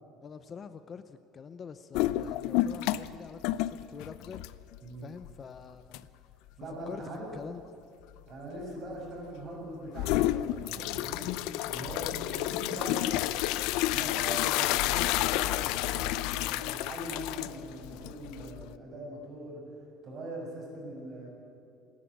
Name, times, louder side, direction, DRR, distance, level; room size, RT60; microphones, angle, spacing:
voice 1, 0.2-4.4 5.0-6.1 6.9-7.6, left 6 dB, 25° left, 12 dB, 0.6 m, -45 dB
sound 1, 1.9-3.2 3.4-4.8 5.2-5.3 5.9-6.0 9.9-18.7, left 15 dB, 70° left, 0.6 m, -30 dB
voice 2, 6.6-7.3 8.3-11.3 11.6-13.6 13.9-19.6 20.0-21.3, right 1 dB, 35° right, -1 dB, 6.9 m, -41 dB
27.5 x 11.5 x 8.7 m, 2.6 s
cardioid pair, 155°, 0 cm